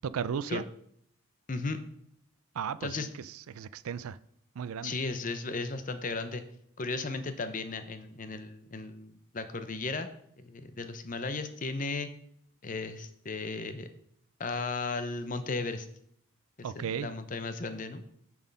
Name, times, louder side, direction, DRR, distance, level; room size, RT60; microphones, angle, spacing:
voice 1, 0.0-0.7 2.5-4.2 4.6-4.9 16.6-17.1, right 7 dB, 80° right, 0.4 m, -35 dB
voice 2, 1.5-1.8 2.8-3.1 4.8-6.4 6.8-10.1 10.4-12.1 12.6-13.9 14.4-15.9 16.8-18.0, left 3 dB, 40° left, 0.7 m, -35 dB
7.3 x 6.2 x 5.4 m
head